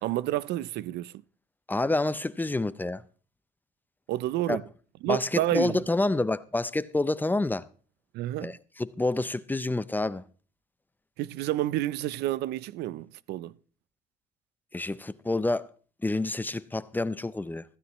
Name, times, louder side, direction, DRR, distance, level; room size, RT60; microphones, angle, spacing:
voice 1, 0.0-1.1 4.1-4.6 5.0-5.8 8.1-8.5 11.2-13.5, right 15 dB, 80° right, 0.5 m, -29 dB
voice 2, 1.7-3.0 4.5-4.6 5.1-7.7 8.4-10.2 14.7-15.7 16.0-17.6, left 2 dB, 10° left, 0.5 m, -28 dB
15.5 x 15.0 x 3.1 m
cardioid pair, 110°, 17 cm